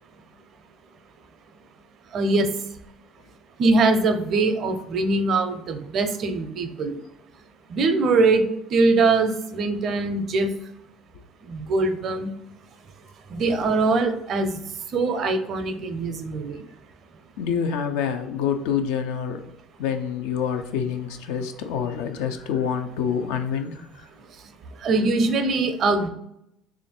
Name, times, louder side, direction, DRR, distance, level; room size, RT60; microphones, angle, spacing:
voice 1, 2.1-2.5 3.6-6.9 7.7-10.5 11.5-12.3 13.3-14.6 14.9-16.6 24.8-26.1, right 3 dB, 55° right, 8 dB, 0.5 m, -22 dB
voice 2, 17.4-19.4 19.8-24.0, left 7 dB, 80° left, 6 dB, 0.4 m, -27 dB
3.2 x 2.5 x 4.2 m, 0.80 s
supercardioid pair, 75°, 0 cm